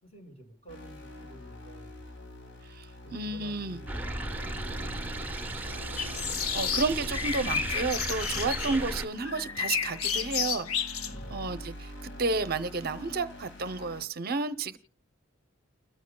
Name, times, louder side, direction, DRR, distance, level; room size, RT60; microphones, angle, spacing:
voice 1, 0.0-2.0 3.0-6.1 11.0-11.7, right 1 dB, 30° left, 5.1 m, -52 dB
sound 1, 0.7-14.0, left 1 dB, 55° left, 1.9 m, -45 dB
voice 2, 2.6-3.8 6.2-14.8, right 3 dB, 45° right, 0.6 m, -32 dB
sound 2, 3.9-9.1, right 2 dB, 10° right, 0.9 m, -35 dB
sound 3, 6.0-8.8 9.2-11.1, left 8 dB, 85° left, 0.9 m, -32 dB
29.5 x 14.0 x 2.2 m
head